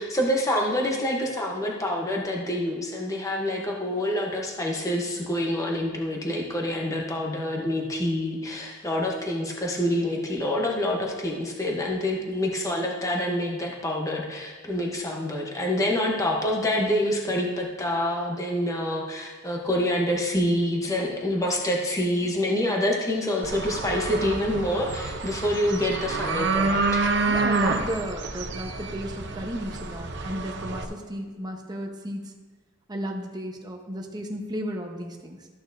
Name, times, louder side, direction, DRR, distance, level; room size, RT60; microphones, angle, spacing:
voice 1, 0.0-27.1, left 1 dB, 15° left, -1 dB, 0.9 m, -27 dB
sound 1, 23.4-30.8, right 3 dB, 60° right, 0.8 m, -28 dB
voice 2, 27.3-32.3 32.9-35.5, equal, 20° right, 2 dB, 1.0 m, -34 dB
13.5 x 8.6 x 2.7 m, 1.3 s
head